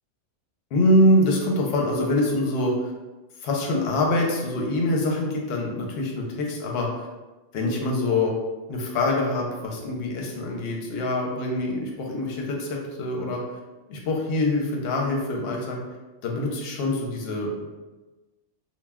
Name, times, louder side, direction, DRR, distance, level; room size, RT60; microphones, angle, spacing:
voice 1, 0.7-2.9 3.4-7.1 7.5-8.3 8.7-13.4 13.9-15.8 16.2-17.7, left 1 dB, 65° left, 0 dB, 0.8 m, -24 dB
2.2 x 2.1 x 3.4 m, 1.2 s
omnidirectional pair, 1.2 m